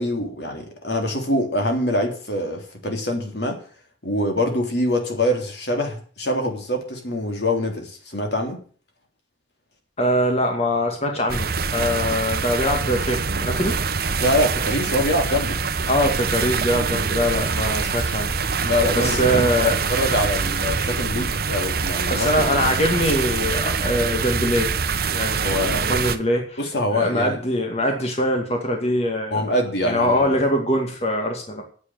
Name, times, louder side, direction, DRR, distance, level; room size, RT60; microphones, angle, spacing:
voice 1, 0.0-3.6 4.0-8.6 14.2-15.6 18.6-22.3 22.7-22.8 25.4-25.8 26.6-27.4 29.3-30.3, left 1 dB, 60° left, 3 dB, 3.4 m, -24 dB
voice 2, 10.0-13.8 15.9-18.3 19.0-19.8 22.1-24.7 25.1-26.6 26.9-29.5 29.8-31.6, equal, 35° left, 2 dB, 2.3 m, -23 dB
sound 1, 11.3-26.2, right 5 dB, 55° right, 1.1 m, -24 dB
9.5 x 8.1 x 9.2 m, 0.44 s
head